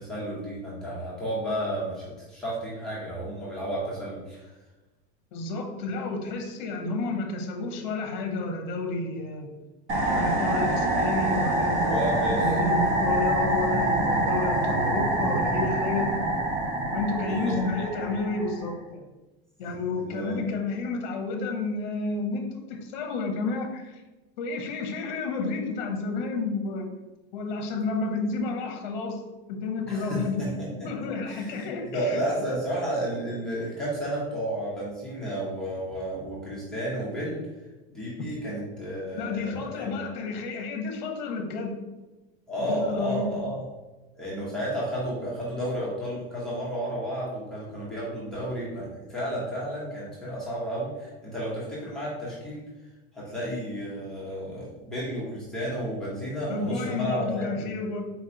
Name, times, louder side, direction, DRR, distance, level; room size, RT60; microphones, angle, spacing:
voice 1, 0.0-4.5 11.8-12.4 17.3-17.5 19.6-20.4 29.8-30.7 31.3-31.7 31.9-37.5 37.9-39.9 42.5-43.6 44.1-52.6 53.1-57.7, right 1 dB, ahead, -9 dB, 0.9 m, -32 dB
voice 2, 5.3-9.5 10.1-16.1 16.9-19.1 19.6-24.0 24.4-26.9 27.3-29.2 29.5-30.4 30.7-32.2 32.5-32.6 38.2-38.3 39.1-41.8 42.7-43.3 56.5-58.0, left 3 dB, 50° left, 4 dB, 0.9 m, -31 dB
sound 1, 9.9-18.7, right 1 dB, 25° right, 0.7 m, -25 dB
4.3 x 3.0 x 3.8 m, 1.1 s
supercardioid pair, 180°, 29 cm